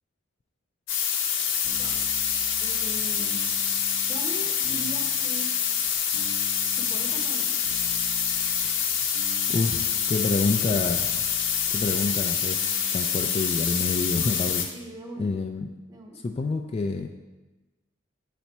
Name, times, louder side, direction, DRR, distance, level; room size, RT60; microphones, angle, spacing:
sound 1, 0.9-14.6, left 7 dB, 65° left, 0.7 m, -26 dB
sound 2, 1.6-13.5, right 1 dB, 70° right, 1.0 m, -46 dB
voice 1, 2.6-3.4 4.1-5.5 6.8-7.6 14.7-15.4 15.9-16.2, right 1 dB, 20° right, 1 dB, 0.8 m, -39 dB
voice 2, 9.5-11.1 11.7-14.7 15.2-15.7 16.2-17.1, left 3 dB, 30° left, 4 dB, 0.3 m, -28 dB
5.9 x 4.1 x 4.4 m, 1.1 s
head